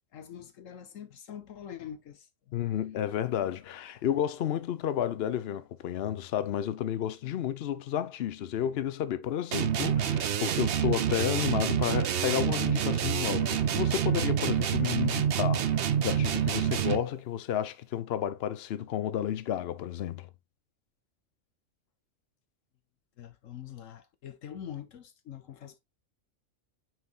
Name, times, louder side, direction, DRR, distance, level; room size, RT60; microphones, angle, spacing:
voice 1, 0.1-2.6 23.2-25.8, left 9 dB, 85° left, 1.3 m, -44 dB
voice 2, 2.5-20.3, left 10 dB, 60° left, 0.9 m, -31 dB
sound 1, 9.5-17.2, right 9 dB, 55° right, 0.8 m, -27 dB
9.1 x 4.5 x 2.4 m
omnidirectional pair, 1.3 m